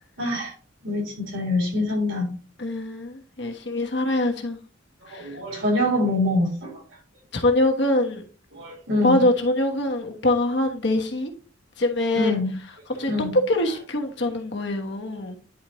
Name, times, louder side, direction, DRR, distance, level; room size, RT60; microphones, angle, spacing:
voice 1, 0.2-0.5 0.8-2.3 5.1-6.8 8.5-9.2 12.1-12.5 12.9-13.3, left 1 dB, 85° right, 3.5 m, -25 dB
voice 2, 2.6-4.6 5.1-5.4 7.3-8.2 9.0-11.3 11.8-12.3 13.0-15.4, left 1 dB, 60° left, 1.2 m, -24 dB
10.0 x 4.3 x 3.0 m
head